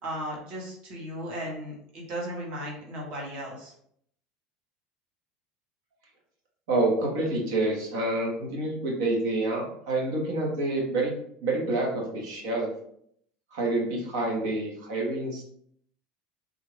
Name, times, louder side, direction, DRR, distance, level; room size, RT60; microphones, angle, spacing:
voice 1, 0.0-3.7, equal, 40° right, -2 dB, 1.1 m, -36 dB
voice 2, 6.7-11.1 11.4-12.7 13.5-15.4, right 2 dB, 70° right, 0 dB, 1.2 m, -27 dB
3.5 x 2.5 x 3.3 m, 0.68 s
cardioid pair, 170°, 3 cm